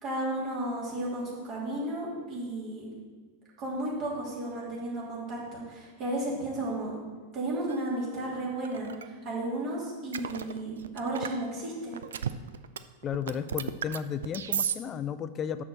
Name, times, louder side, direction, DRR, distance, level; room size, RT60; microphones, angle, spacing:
voice 1, 0.0-2.9 3.6-7.0 7.3-12.0, right 1 dB, 35° right, -5 dB, 2.8 m, -33 dB
sound 1, 7.7-7.8 8.6-9.1 10.1-11.4 11.9-12.8 13.0-14.7, right 8 dB, 65° right, 0.3 m, -33 dB
voice 2, 13.0-15.6, left 8 dB, 30° left, 13 dB, 0.4 m, -33 dB
6.5 x 6.0 x 6.4 m, 1.4 s
figure-of-eight pair, 90°, 0 cm